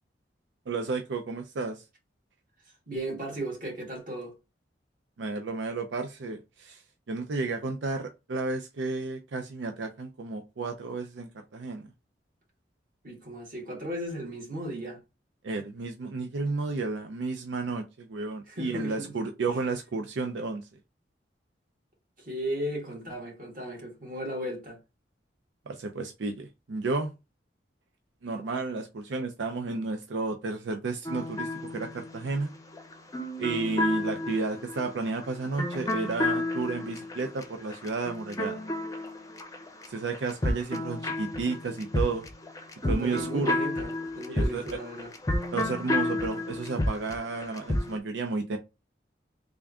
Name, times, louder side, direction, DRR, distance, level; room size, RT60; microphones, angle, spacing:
voice 1, 0.7-1.8 5.2-6.8 7.1-11.9 15.4-20.7 25.7-27.1 28.2-32.5 33.4-38.6 39.9-42.3 42.9-43.6 44.3-44.6 45.5-48.6, right 3 dB, 85° right, 0.5 m, -32 dB
voice 2, 2.9-4.4 13.0-15.0 18.5-19.1 19.5-19.6 22.2-24.8 42.8-45.1, right 1 dB, 50° right, 1.7 m, -36 dB
sound 1, 31.0-39.9 40.1-48.0, left 1 dB, 20° left, 0.5 m, -31 dB
3.5 x 2.5 x 3.4 m
head